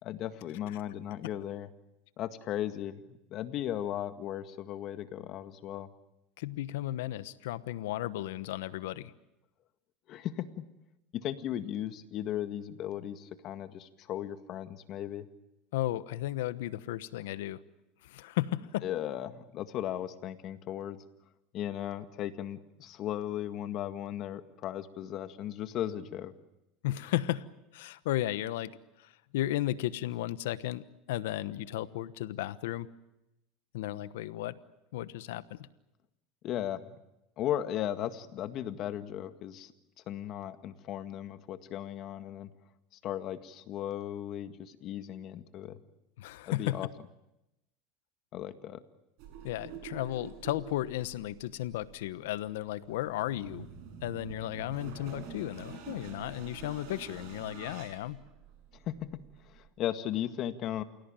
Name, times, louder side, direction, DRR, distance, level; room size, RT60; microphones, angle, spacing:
voice 1, 0.0-1.7 2.2-5.9 10.1-10.6 11.1-15.3 18.8-21.0 21.5-26.3 36.4-37.0 37.4-39.7 40.1-42.5 42.9-45.8 46.5-46.9 48.3-48.8 58.9-60.8, left 11 dB, 50° left, 9 dB, 1.8 m, -36 dB
voice 2, 6.4-9.1 15.7-17.6 18.0-18.8 26.8-27.5 27.7-28.7 29.3-32.9 33.7-34.6 34.9-35.6 46.2-46.8 49.4-53.7 54.0-58.2, left 14 dB, 85° left, 15 dB, 1.1 m, -34 dB
sound 1, 49.2-59.7, right 7 dB, 65° right, 6.7 m, -47 dB
28.5 x 17.5 x 9.0 m, 0.92 s
supercardioid pair, 115°, 0 cm